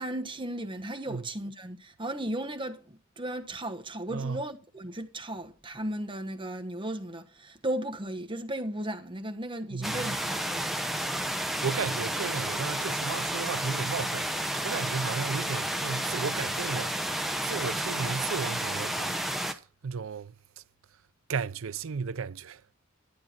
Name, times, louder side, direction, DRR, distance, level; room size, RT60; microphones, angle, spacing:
voice 1, 0.0-10.8, right 1 dB, 25° right, 1.2 m, -35 dB
voice 2, 4.1-4.4 9.7-10.2 11.2-16.9 17.4-20.3 21.3-22.6, right 5 dB, 75° right, 0.5 m, -34 dB
sound 1, 9.8-19.5, right 1 dB, ahead, 0.9 m, -31 dB
11.5 x 9.6 x 4.3 m
head